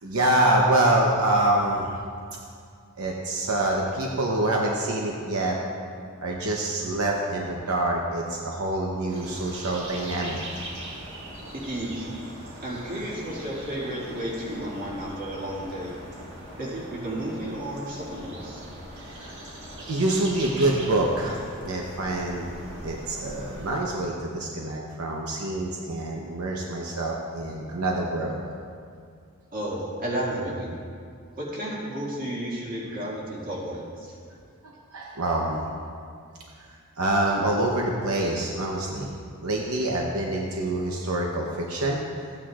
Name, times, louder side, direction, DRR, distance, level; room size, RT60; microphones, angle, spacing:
voice 1, 0.0-2.0 3.0-5.6 6.2-10.4 19.0-19.5 19.9-21.4 21.6-22.5 22.8-28.4 34.6-35.6 36.7-39.1 39.4-42.0, right 1 dB, 80° right, -1 dB, 0.9 m, -26 dB
sound 1, 9.1-23.8, right 1 dB, 55° right, 1.7 m, -41 dB
voice 2, 11.5-12.1 12.6-15.9 16.6-18.6 29.5-30.7 31.4-34.1, right 1 dB, 40° right, -5 dB, 2.2 m, -32 dB
14.5 x 8.8 x 2.5 m, 2.3 s
head